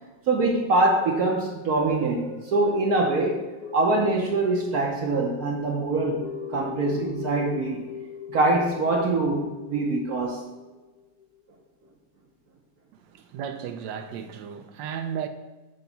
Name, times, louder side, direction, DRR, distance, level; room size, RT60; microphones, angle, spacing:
voice 1, 0.3-3.4 3.7-7.8 8.3-10.4, right 2 dB, 60° right, -1 dB, 1.1 m, -24 dB
sound 1, 1.0-11.4 11.8-11.9, left 6 dB, 65° left, 1.4 m, -41 dB
voice 2, 12.9-15.3, right 8 dB, 80° right, 8 dB, 1.3 m, -34 dB
8.0 x 2.9 x 5.8 m, 1.1 s
omnidirectional pair, 2.0 m